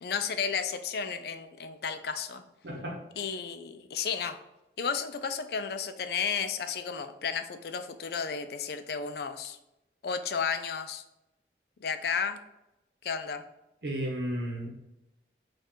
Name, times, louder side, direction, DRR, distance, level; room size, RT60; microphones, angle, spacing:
voice 1, 0.0-2.4 3.2-4.4 4.8-9.6 10.0-11.0 11.8-12.4 13.0-13.4, left 6 dB, 60° left, 9 dB, 0.4 m, -33 dB
voice 2, 2.6-3.0 13.8-14.7, right 1 dB, 70° right, -1 dB, 0.9 m, -33 dB
4.4 x 2.4 x 4.4 m, 0.90 s
head